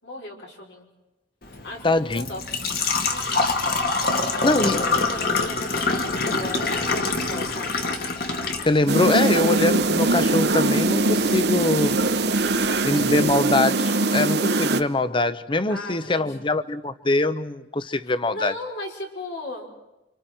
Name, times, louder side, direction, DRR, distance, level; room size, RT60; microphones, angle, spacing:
voice 1, 0.0-0.9 1.6-2.4 3.0-3.5 3.7-6.7 7.1-7.8 12.4-13.3 15.7-16.4 18.1-19.7, left 1 dB, 75° left, -1 dB, 5.4 m, -37 dB
Engine / Trickle dribble / Fill (with liquid), 1.4-13.4, left 3 dB, 55° left, 2.1 m, -27 dB
voice 2, 1.8-2.3 4.4-4.8 8.6-12.0 12.8-18.5, left 2 dB, 30° left, 13 dB, 0.8 m, -23 dB
sound 1, 8.9-14.8, right 2 dB, 65° right, 1.0 m, -22 dB
29.5 x 27.0 x 4.6 m, 0.99 s
head